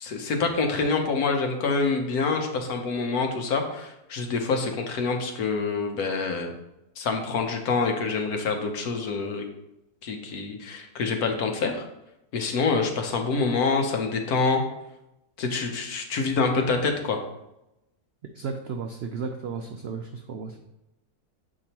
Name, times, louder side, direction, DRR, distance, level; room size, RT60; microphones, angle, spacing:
voice 1, 0.0-6.5 7.0-9.5 10.0-11.8 12.3-14.6 15.4-17.2, left 4 dB, 75° left, 4 dB, 1.3 m, -26 dB
voice 2, 18.3-20.6, right 5 dB, 80° right, 5 dB, 0.5 m, -34 dB
7.5 x 4.8 x 2.9 m, 0.88 s
omnidirectional pair, 1.6 m